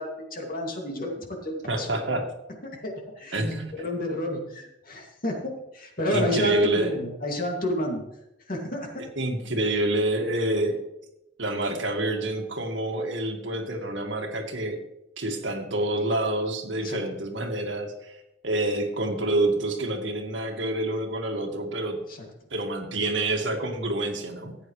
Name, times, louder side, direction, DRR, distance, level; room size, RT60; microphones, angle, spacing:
voice 1, 0.0-1.9 2.6-3.4 3.7-8.0 8.5-9.0 16.8-17.0 22.1-22.2, left 1 dB, 50° left, 1 dB, 2.4 m, -30 dB
voice 2, 1.7-2.3 3.3-3.7 6.1-7.0 9.2-10.8 11.4-14.8 15.2-22.0 22.5-24.6, right 1 dB, 80° right, 3 dB, 1.9 m, -27 dB
15.0 x 9.1 x 3.2 m, 0.86 s
head